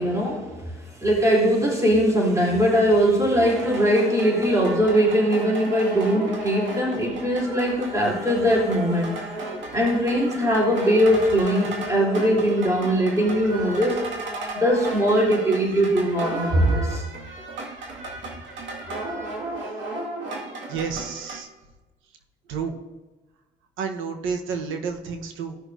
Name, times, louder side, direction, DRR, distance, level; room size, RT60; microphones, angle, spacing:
voice 1, 0.0-9.2 9.7-14.0 14.5-17.0, equal, 15° right, -5 dB, 3.4 m, -21 dB
sound 1, 3.4-21.4, right 2 dB, 70° right, 2.1 m, -34 dB
voice 2, 20.7-21.5 22.5-22.8 23.8-25.6, right 5 dB, 90° right, 4 dB, 1.2 m, -30 dB
16.5 x 6.2 x 2.7 m, 1.1 s
cardioid pair, 90°, 20 cm